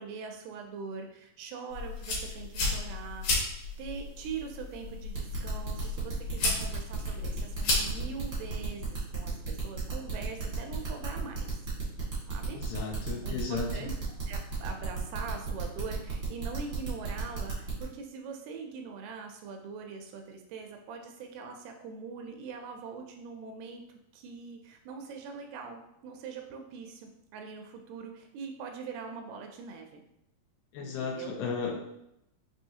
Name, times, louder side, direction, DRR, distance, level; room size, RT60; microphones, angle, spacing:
voice 1, 0.0-11.6 12.3-12.6 13.2-13.9 14.3-23.8 24.1-30.0 30.8-31.3, right 5 dB, 80° right, 4 dB, 2.4 m, -42 dB
sound 1, 1.7-8.5, left 3 dB, 65° left, 1.8 m, -34 dB
sound 2, 5.1-17.8, right 5 dB, 65° right, 1.0 m, -36 dB
voice 2, 12.5-13.7 30.7-31.9, left 5 dB, 85° left, 1 dB, 2.8 m, -34 dB
6.2 x 2.9 x 2.7 m, 0.82 s
omnidirectional pair, 4.7 m